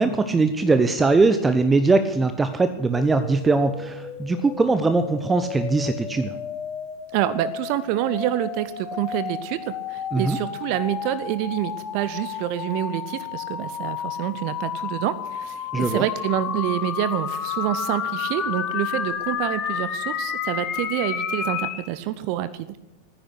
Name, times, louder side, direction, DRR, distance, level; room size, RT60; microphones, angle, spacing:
voice 1, 0.0-6.3 10.1-10.4 15.7-16.1, right 3 dB, 15° right, 10 dB, 0.9 m, -21 dB
sound 1, 2.9-21.8, left 8 dB, 30° left, 1.7 m, -31 dB
voice 2, 7.1-22.8, right 13 dB, 45° right, 15 dB, 0.7 m, -27 dB
14.5 x 10.0 x 8.0 m, 0.95 s
figure-of-eight pair, 90°, 0 cm